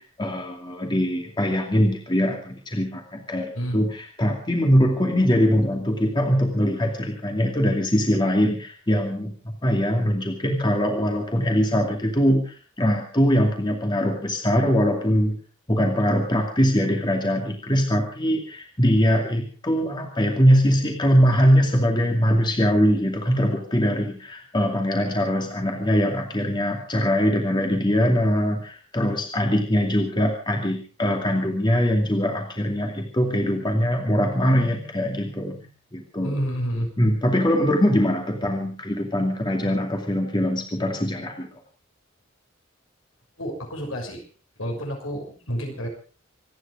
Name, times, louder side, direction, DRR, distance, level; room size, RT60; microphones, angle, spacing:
voice 1, 0.0-15.4 15.7-35.7 35.9-36.4 37.0-41.5, equal, 20° left, 2 dB, 2.5 m, -22 dB
voice 2, 36.2-36.9 43.4-44.2 44.6-45.9, equal, 70° left, 2 dB, 6.3 m, -29 dB
26.5 x 10.0 x 5.0 m, 0.39 s
head